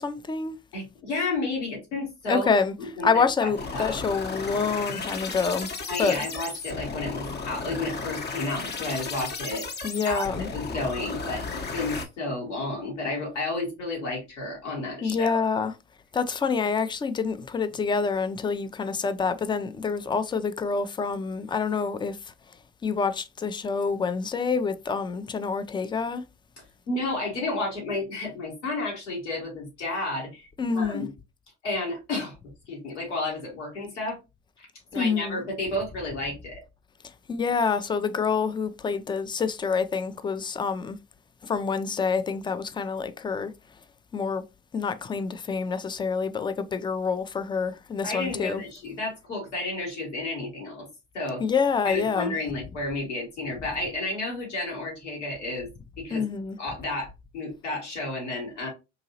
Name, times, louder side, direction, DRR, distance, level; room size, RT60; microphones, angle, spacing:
voice 1, 0.0-0.6 2.3-2.7 3.0-5.7 6.0-6.2 9.8-10.5 15.0-15.7 16.1-22.3 22.8-26.2 30.6-31.1 34.9-35.4 37.3-41.0 41.4-43.5 44.1-44.4 44.7-48.6 51.4-52.4 56.1-56.6, left 5 dB, 15° left, 0.4 m, -27 dB
voice 2, 0.7-2.5 2.8-4.0 5.9-9.7 10.0-10.2 10.5-11.5 11.7-15.4 26.9-30.5 30.7-31.1 31.6-32.4 32.7-34.2 34.6-34.7 34.9-36.6 48.0-50.9 51.1-51.4 51.8-55.7 56.0-56.3 56.6-58.7, left 2 dB, 85° left, 1.9 m, -31 dB
sound 1, 3.6-12.0, left 4 dB, 30° left, 0.8 m, -34 dB
3.8 x 2.7 x 2.7 m
hypercardioid pair, 65°, 35 cm